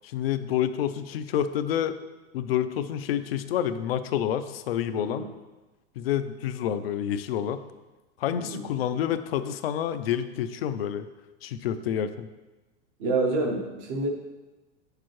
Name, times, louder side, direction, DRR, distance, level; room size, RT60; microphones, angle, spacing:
voice 1, 0.0-2.0 2.3-5.2 6.0-7.6 8.2-11.1 11.4-12.3, left 10 dB, 60° left, 12 dB, 0.5 m, -28 dB
voice 2, 4.9-5.3 8.3-8.6 13.0-14.1, right 2 dB, 20° right, 2 dB, 0.5 m, -28 dB
8.2 x 6.6 x 3.1 m, 1.2 s
supercardioid pair, 175°, 34 cm